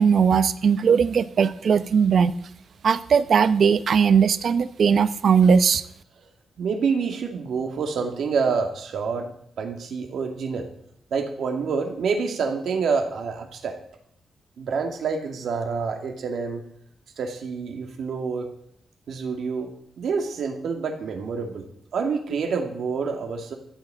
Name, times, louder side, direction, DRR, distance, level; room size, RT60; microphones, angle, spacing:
voice 1, 0.0-2.3 2.8-5.8, right 6 dB, 55° right, 13 dB, 0.8 m, -19 dB
voice 2, 6.6-9.3 9.6-10.7 11.1-13.8 14.6-16.6 17.2-18.5 19.1-19.7 20.0-21.7 21.9-23.6, right 5 dB, 75° right, 3 dB, 2.5 m, -27 dB
14.5 x 8.5 x 7.8 m, 0.69 s
wide cardioid pair, 130°, 0 cm